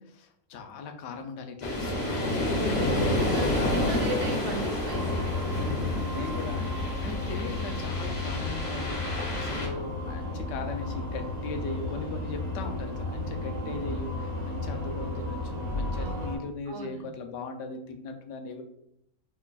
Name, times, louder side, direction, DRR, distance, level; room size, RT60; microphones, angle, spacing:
voice 1, 0.0-4.1 4.5-4.7 5.6-9.0 9.3-18.6, left 3 dB, 65° left, 5 dB, 0.7 m, -39 dB
sound 1, 1.6-9.7, left 1 dB, 25° left, 0.9 m, -29 dB
voice 2, 2.9-5.7 6.2-6.4 15.9-16.4 16.7-17.1, right 3 dB, 80° right, 3 dB, 1.2 m, -39 dB
sound 2, 4.9-16.4, left 2 dB, 40° right, 0.7 m, -33 dB
4.4 x 3.2 x 2.3 m, 0.77 s
omnidirectional pair, 1.6 m